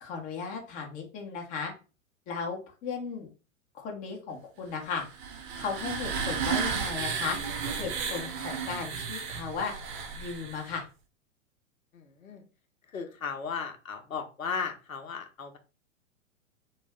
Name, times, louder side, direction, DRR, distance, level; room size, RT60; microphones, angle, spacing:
voice 1, 0.0-1.7 2.3-3.3 3.7-5.0 5.6-7.4 7.8-9.7 10.2-10.8, left 5 dB, 20° left, 0 dB, 0.6 m, -35 dB
sound 1, 4.9-10.8, right 6 dB, 40° right, 0.7 m, -33 dB
voice 2, 11.9-12.4 12.9-15.6, left 6 dB, 80° left, 5 dB, 0.7 m, -36 dB
2.3 x 2.0 x 3.4 m, 0.33 s
figure-of-eight pair, 105°, 40 cm